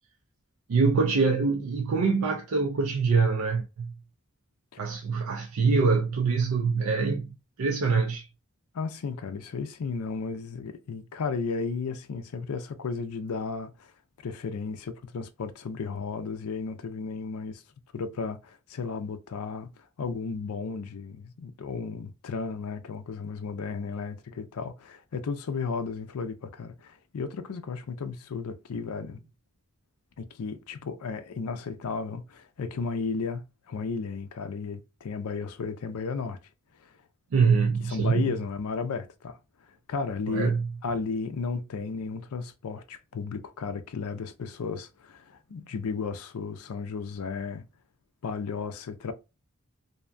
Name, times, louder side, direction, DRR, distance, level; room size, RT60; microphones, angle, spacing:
voice 1, 0.7-3.9 4.8-8.3 37.3-38.2 40.3-40.7, right 4 dB, 75° right, 0.4 m, -24 dB
voice 2, 8.7-13.9 14.2-17.6 17.9-29.2 30.2-36.4 36.8-36.9 37.8-39.4 39.7-40.5 40.8-47.7 48.2-49.1, left 4 dB, 85° left, 0.4 m, -34 dB
2.6 x 2.2 x 2.5 m
head